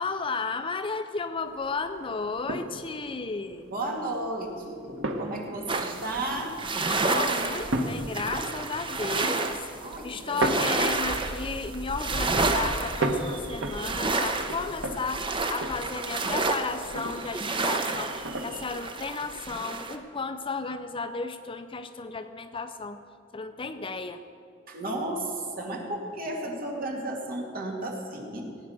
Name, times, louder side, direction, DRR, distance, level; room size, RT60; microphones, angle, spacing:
voice 1, 0.0-3.7 6.8-9.6 10.0-23.0 23.3-24.2, left 4 dB, 25° left, 9 dB, 0.5 m, -34 dB
sound 1, 1.5-18.9, right 2 dB, 85° right, 1.3 m, -36 dB
voice 2, 3.6-6.5 9.8-10.8 24.7-28.5, right 1 dB, 50° right, 0 dB, 2.3 m, -34 dB
sound 2, 5.7-20.0, right 3 dB, 25° right, 0.9 m, -30 dB
18.0 x 9.2 x 6.4 m, 2.4 s
head